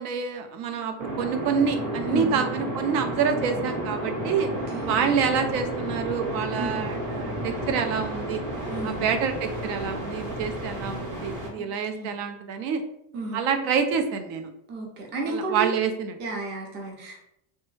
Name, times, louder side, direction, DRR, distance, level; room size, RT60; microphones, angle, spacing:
voice 1, 0.0-4.5 4.8-8.4 8.8-12.8 13.3-14.5 15.3-16.2, right 6 dB, 75° right, 6 dB, 0.6 m, -27 dB
sound 1, 1.0-11.5, right 1 dB, 40° right, 0.9 m, -32 dB
voice 2, 2.1-2.5 4.7-4.9 6.6-6.8 8.7-9.2 11.9-12.1 13.1-13.4 14.7-15.7 16.2-17.2, right 3 dB, 25° right, 0 dB, 0.4 m, -32 dB
3.2 x 2.1 x 3.1 m, 0.76 s
cardioid pair, 155°, 48 cm